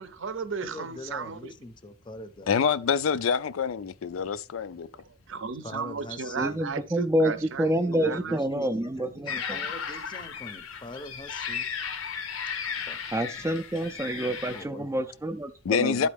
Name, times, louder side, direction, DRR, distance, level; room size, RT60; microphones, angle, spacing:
voice 1, 0.0-1.5 5.0-8.7, right 5 dB, 65° right, 0.6 m, -35 dB
voice 2, 0.6-2.5 5.6-6.6 7.9-11.7 12.9-13.0 14.5-15.1 16.0-16.1, left 2 dB, 25° left, 0.6 m, -42 dB
voice 3, 2.5-4.9 15.6-16.1, left 6 dB, 75° left, 0.4 m, -26 dB
voice 4, 6.4-9.4 13.1-16.0, right 1 dB, 15° right, 0.4 m, -28 dB
sound 1, 9.3-14.6, left 6 dB, 90° left, 0.9 m, -35 dB
12.0 x 4.2 x 3.4 m
head